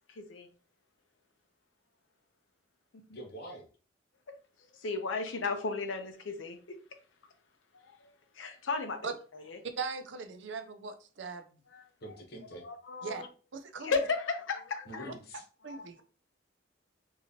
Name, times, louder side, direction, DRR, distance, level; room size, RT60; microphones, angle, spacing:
voice 1, 0.1-0.5 4.3-4.4 4.8-6.8 7.8-9.6 11.7-11.8 12.6-13.3 13.8-15.1 15.7-16.0, left 4 dB, 85° left, 0.7 m, -35 dB
voice 2, 3.1-3.7 12.0-12.6 14.8-15.4, right 1 dB, 55° left, 1.0 m, -45 dB
voice 3, 9.8-11.6 13.0-13.2 13.5-13.9 15.1-15.2 15.6-16.0, right 4 dB, 70° right, 0.6 m, -39 dB
3.8 x 3.0 x 2.8 m
head